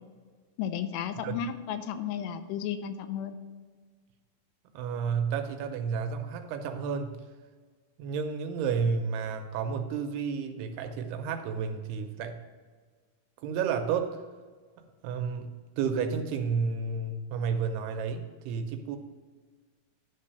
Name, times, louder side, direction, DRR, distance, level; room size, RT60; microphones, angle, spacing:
voice 1, 0.6-3.4, left 8 dB, 90° left, 9 dB, 2.8 m, -33 dB
voice 2, 4.7-7.2 8.0-12.4 13.4-14.1 15.0-19.0, right 6 dB, 80° right, 6 dB, 2.5 m, -31 dB
11.0 x 3.8 x 6.7 m, 1.5 s
omnidirectional pair, 4.8 m